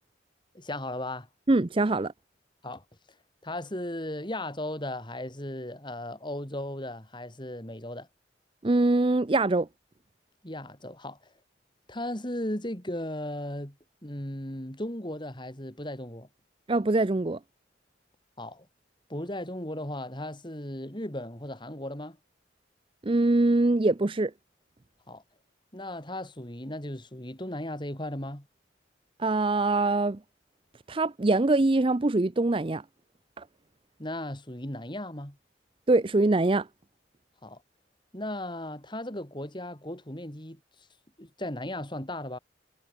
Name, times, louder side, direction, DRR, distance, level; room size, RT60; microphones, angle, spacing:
voice 1, 0.5-1.3 2.6-2.8 3.4-8.1 10.4-11.2 11.9-13.8 14.0-16.3 18.4-18.7 19.1-22.2 25.1-25.2 25.7-28.5 34.0-35.4 37.4-37.6 38.1-40.6 41.2-42.4, left 1 dB, 25° left, 4.3 m, -36 dB
voice 2, 1.5-2.1 8.6-9.7 16.7-17.4 23.0-24.3 29.2-30.2 30.9-32.8 33.4-33.5 35.9-36.7, right 2 dB, 30° right, 0.5 m, -23 dB
head